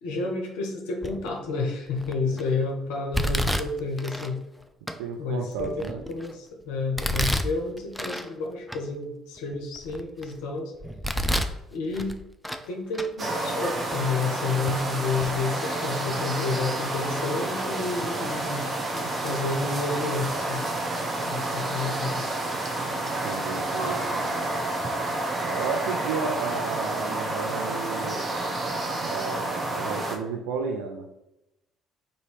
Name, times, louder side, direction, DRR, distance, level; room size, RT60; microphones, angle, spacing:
voice 1, 0.0-4.4 5.2-10.7 11.7-12.2 12.7-20.6 21.2-22.3, left 3 dB, 70° left, 2 dB, 0.5 m, -30 dB
Domestic sounds home sounds, 1.0-1.4 2.0-2.4 3.1-4.3 4.9-5.0 5.6-6.3 7.0-8.3 8.7-8.8 9.4-10.3 10.8-11.6 11.9-12.7 12.9-13.1 13.9-14.0 14.7-14.8 15.1-15.3, equal, ahead, 0.4 m, -29 dB
voice 2, 5.0-6.0 22.9-24.5 25.4-28.2 29.0-31.1, right 5 dB, 75° right, 2 dB, 0.3 m, -33 dB
sound 1, 13.2-30.2, right 2 dB, 40° right, 0.7 m, -29 dB
4.0 x 2.7 x 3.1 m, 0.90 s
hypercardioid pair, 50°, 0 cm